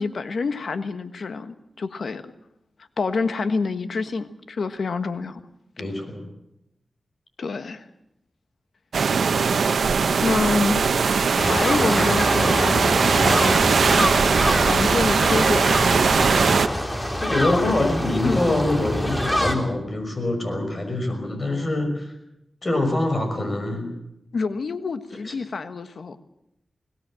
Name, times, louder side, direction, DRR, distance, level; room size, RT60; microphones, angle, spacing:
voice 1, 0.0-2.3 3.0-5.4 7.4-7.9 10.2-13.7 14.7-15.9 17.5-17.9 18.2-18.5 24.3-26.2, left 4 dB, 75° left, 10 dB, 1.4 m, -27 dB
voice 2, 5.8-6.3 17.2-22.1 22.6-23.9 25.2-25.3, left 2 dB, 45° left, 6 dB, 6.0 m, -24 dB
sound 1, 8.9-16.7, right 5 dB, 85° right, 1.0 m, -20 dB
sound 2, 11.4-19.6, equal, 20° left, 3.5 m, -25 dB
22.0 x 18.0 x 7.6 m, 0.84 s
cardioid pair, 60°, 0 cm